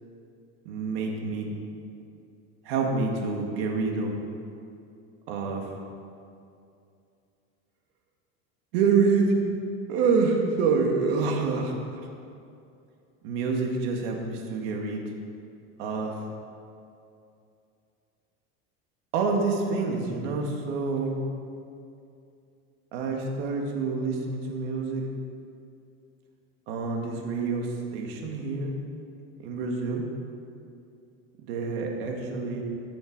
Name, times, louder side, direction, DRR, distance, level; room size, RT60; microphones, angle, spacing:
voice 1, 0.6-1.5 2.6-4.2 5.3-5.7 8.7-9.4 9.9-12.0 13.2-15.0 15.8-16.2 19.1-21.1 22.9-25.0 26.7-28.8 29.4-30.0 31.4-32.6, right 4 dB, 75° right, 1 dB, 2.4 m, -27 dB
20.0 x 7.3 x 5.2 m, 2.5 s
cardioid pair, 165°, 30 cm